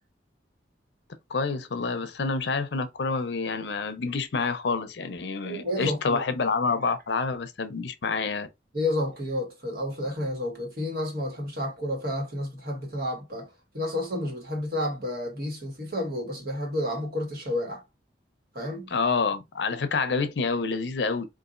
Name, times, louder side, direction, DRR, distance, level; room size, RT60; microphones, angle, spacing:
voice 1, 1.3-8.5 18.9-21.3, left 4 dB, 75° left, 0.5 m, -28 dB
voice 2, 5.4-6.2 8.7-17.8 18.5-18.9, left 1 dB, 55° right, 1.3 m, -31 dB
3.9 x 2.5 x 2.4 m
head